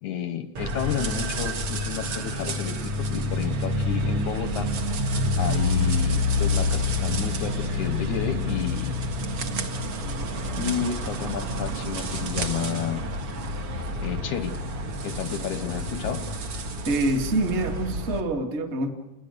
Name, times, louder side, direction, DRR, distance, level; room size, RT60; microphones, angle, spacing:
voice 1, 0.0-4.7 5.0-8.9 10.6-13.0 14.0-14.6 15.0-16.2, left 9 dB, 70° left, 10 dB, 1.9 m, -31 dB
sound 1, 0.6-18.2, left 1 dB, 45° right, 2.1 m, -28 dB
voice 2, 16.9-18.9, right 2 dB, 25° right, 4 dB, 1.8 m, -26 dB
29.0 x 21.0 x 6.6 m, 0.96 s
omnidirectional pair, 4.4 m